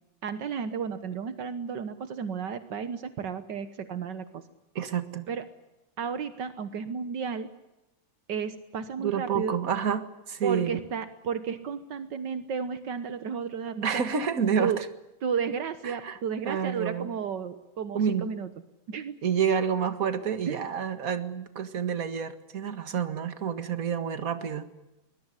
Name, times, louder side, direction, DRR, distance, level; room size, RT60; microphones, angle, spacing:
voice 1, 0.2-4.4 5.3-5.5 6.0-7.5 8.3-9.6 10.4-14.0 14.6-14.8 15.2-18.5 18.9-19.1 20.5-20.6, right 6 dB, 70° right, 11 dB, 1.0 m, -33 dB
voice 2, 4.7-5.3 9.0-10.8 13.8-14.8 15.8-16.2 16.4-17.1 17.9-18.3 19.2-24.7, right 7 dB, 40° right, 10 dB, 1.4 m, -29 dB
23.0 x 21.0 x 9.8 m, 0.96 s
omnidirectional pair, 3.7 m